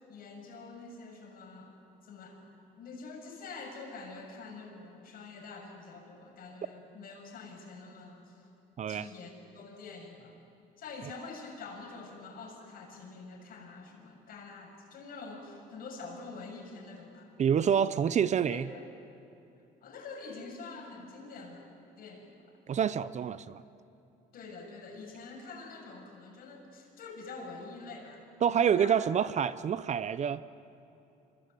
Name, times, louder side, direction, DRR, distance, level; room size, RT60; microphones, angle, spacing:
voice 1, 0.0-1.7 2.0-2.4 2.8-8.5 8.9-10.3 10.8-17.3 18.4-18.8 19.8-22.5 24.3-28.2 28.5-28.9, left 4 dB, 60° left, 2 dB, 7.1 m, -46 dB
voice 2, 17.4-18.7 22.7-23.6 28.4-30.4, right 8 dB, 45° right, 15 dB, 0.8 m, -27 dB
26.0 x 23.0 x 9.3 m, 2.9 s
cardioid pair, 110°, 17 cm